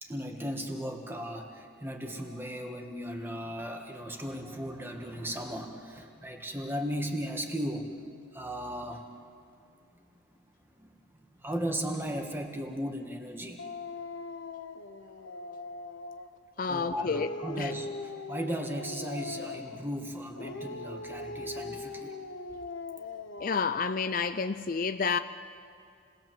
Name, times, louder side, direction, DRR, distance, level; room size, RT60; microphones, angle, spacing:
voice 1, 0.0-8.0 8.3-9.1 10.0-13.6 16.6-22.2, equal, 10° right, 1.7 m, -36 dB
Dog, 13.6-16.4 16.8-19.9 20.3-23.9, left 3 dB, 80° left, 1.2 m, -41 dB
voice 2, 16.6-17.7 23.4-25.2, left 5 dB, 45° left, 0.5 m, -30 dB
29.0 x 20.0 x 7.7 m
head